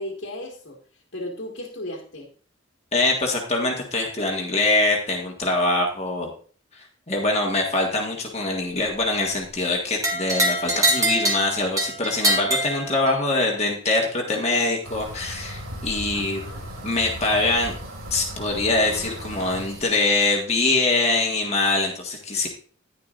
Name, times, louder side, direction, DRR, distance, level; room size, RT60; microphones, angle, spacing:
voice 1, 0.0-2.3 16.1-16.6, left 1 dB, 60° left, 0 dB, 1.8 m, -35 dB
voice 2, 2.9-6.3 7.1-16.4 16.8-17.8 18.1-22.5, left 2 dB, 30° left, 1 dB, 1.6 m, -23 dB
sound 1, 10.0-13.4, right 1 dB, 15° right, 1.6 m, -24 dB
sound 2, 14.8-19.9, equal, 90° right, 3.1 m, -36 dB
10.5 x 10.5 x 2.5 m, 0.43 s
head